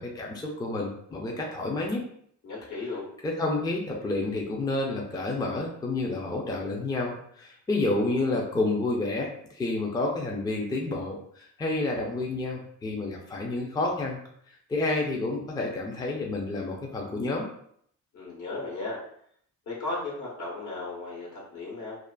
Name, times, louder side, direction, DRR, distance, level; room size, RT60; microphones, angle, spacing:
voice 1, 0.0-2.1 3.2-14.2 14.7-17.5, left 2 dB, 15° left, -1 dB, 0.4 m, -29 dB
voice 2, 2.4-3.1 18.1-19.0 19.7-22.0, left 3 dB, 75° left, -4 dB, 1.2 m, -35 dB
2.5 x 2.4 x 2.2 m, 0.67 s
cardioid pair, 90°, 30 cm